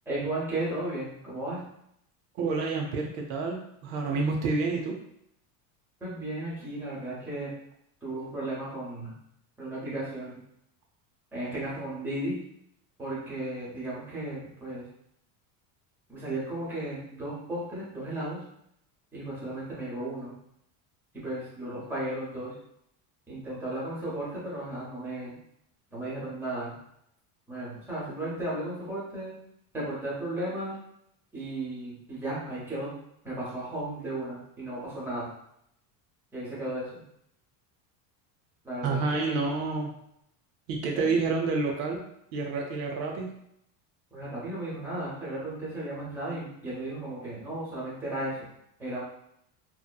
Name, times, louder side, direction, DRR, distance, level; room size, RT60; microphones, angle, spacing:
voice 1, 0.1-1.6 6.0-7.5 8.0-9.2 9.6-10.4 11.3-12.4 13.0-14.9 16.1-18.4 19.1-20.3 21.2-22.5 23.3-25.4 25.9-26.7 27.5-29.3 29.7-30.8 31.3-32.9 33.2-35.3 36.3-37.0 38.6-39.3 40.9-41.1 44.1-48.5 48.8-49.0, right 1 dB, 5° right, -8 dB, 0.7 m, -35 dB
voice 2, 2.4-5.0 38.8-39.9 40.7-42.0 42.3-43.3, right 4 dB, 65° right, 1 dB, 0.5 m, -29 dB
2.7 x 2.1 x 2.2 m, 0.75 s
cardioid pair, 160°, 45 cm